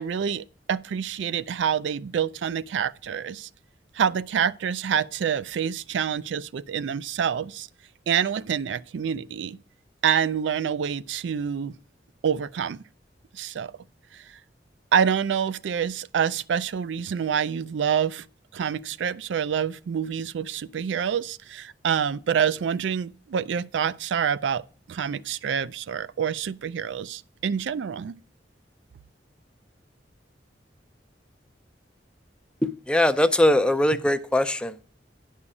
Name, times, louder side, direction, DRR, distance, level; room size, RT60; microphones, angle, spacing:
voice 1, 0.0-3.5 4.0-7.7 8.1-9.6 10.0-11.7 12.2-12.8 13.3-13.7 14.9-18.3 18.5-24.6 24.9-28.2, right 7 dB, 80° right, 0.4 m, -27 dB
voice 2, 32.6-34.8, left 1 dB, 5° left, 0.4 m, -21 dB
9.8 x 5.5 x 4.8 m
head